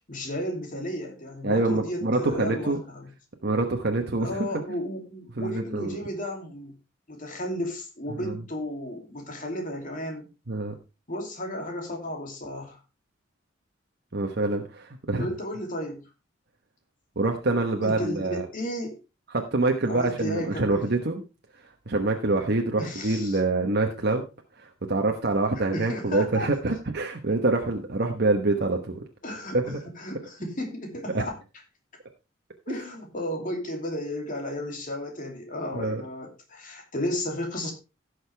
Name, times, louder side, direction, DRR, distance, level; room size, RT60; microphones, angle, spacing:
voice 1, 0.1-3.1 4.2-6.7 7.1-10.3 11.1-12.8 15.2-16.1 17.8-19.0 19.9-20.8 22.8-23.4 25.7-26.5 29.2-31.4 32.7-37.7, left 1 dB, 45° left, 2 dB, 2.9 m, -33 dB
voice 2, 1.4-2.8 3.4-4.6 5.4-6.0 8.2-8.4 10.5-10.7 14.1-15.3 17.2-18.5 19.3-21.2 21.9-24.2 24.6-29.0 29.5-29.8 31.1-31.2 35.7-36.0, right 2 dB, 55° right, 3 dB, 1.1 m, -26 dB
16.0 x 6.5 x 3.4 m, 0.29 s
head